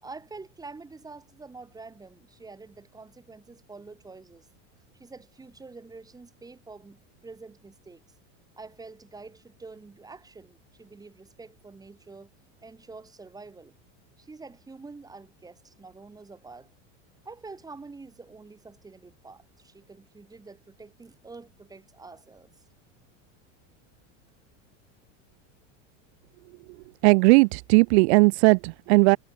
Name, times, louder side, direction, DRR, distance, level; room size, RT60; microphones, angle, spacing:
voice 1, 0.0-4.5 5.0-8.0 8.6-12.3 12.6-13.7 14.2-16.7 17.2-22.5, right 3 dB, 10° right, 3.2 m, -46 dB
voice 2, 27.0-29.2, right 27 dB, 60° right, 0.7 m, -18 dB
supercardioid pair, 150°, 37 cm